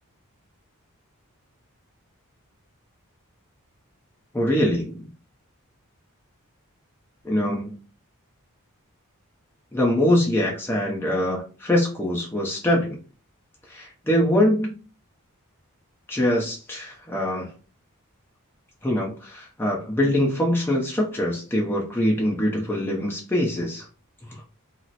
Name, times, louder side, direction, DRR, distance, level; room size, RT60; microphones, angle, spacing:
voice 1, 4.3-5.1 7.2-7.7 9.7-13.0 13.7-14.7 16.1-17.5 18.8-23.9 24.3-24.4, left 1 dB, 10° left, -2 dB, 0.6 m, -23 dB
2.9 x 2.0 x 3.9 m, 0.35 s
head